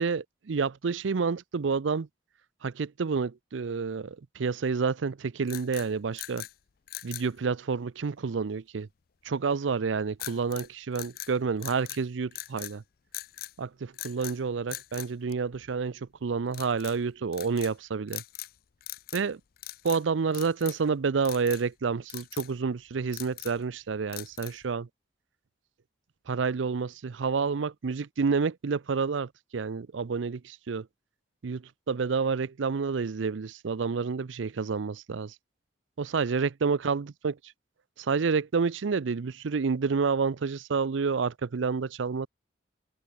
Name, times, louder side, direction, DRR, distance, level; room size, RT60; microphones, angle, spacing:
voice 1, 0.0-2.1 2.6-6.5 7.0-8.9 9.2-12.8 13.6-18.2 19.1-19.4 19.8-24.9 26.3-30.9 31.4-35.3 36.0-37.3 38.0-42.3, right 5 dB, 80° right, 0.5 m, -29 dB
sound 1, 5.4-6.5 6.9-7.3 10.2-10.7 11.0-12.0 12.3-12.8 13.1-13.5 13.9-14.4 14.7-15.9 16.5-17.0 17.3-17.7 18.1-18.6 18.8-19.3 19.6-20.0 20.3-20.9 21.3-21.7 22.1-22.5 22.9-23.6 24.1-24.7, left 16 dB, 55° left, 0.5 m, -41 dB
head